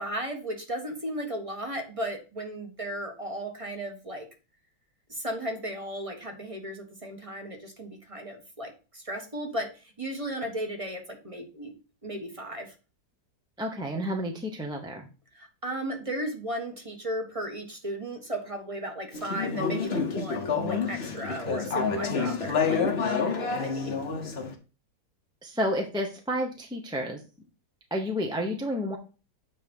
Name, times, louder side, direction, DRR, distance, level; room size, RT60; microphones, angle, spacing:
voice 1, 0.0-4.3 5.1-11.7 12.0-12.7 15.3-24.0, right 1 dB, 20° right, 3 dB, 1.1 m, -35 dB
voice 2, 13.6-15.1 25.4-27.2 27.9-29.0, equal, 5° right, 1 dB, 0.6 m, -30 dB
Conversation / Chatter, 19.1-24.5, left 5 dB, 40° left, 1.1 m, -28 dB
8.8 x 3.3 x 5.2 m, 0.33 s
omnidirectional pair, 1.9 m